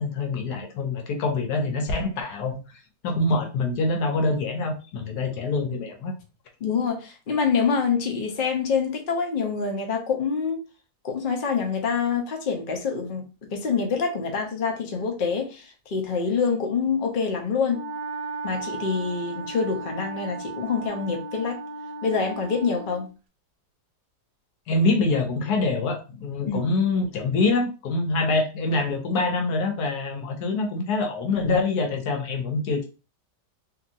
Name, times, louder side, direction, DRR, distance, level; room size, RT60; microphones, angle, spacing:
voice 1, 0.0-2.6 3.0-6.1 24.7-32.9, left 3 dB, 75° left, 1.2 m, -25 dB
voice 2, 6.6-10.6 11.0-17.9 18.4-21.6 22.0-23.1 26.5-26.6, left 5 dB, 60° left, 0.5 m, -26 dB
Wind instrument woodwind instrument, 17.6-23.0, right 3 dB, 75° right, 1.2 m, -35 dB
2.8 x 2.7 x 2.6 m
omnidirectional pair, 1.8 m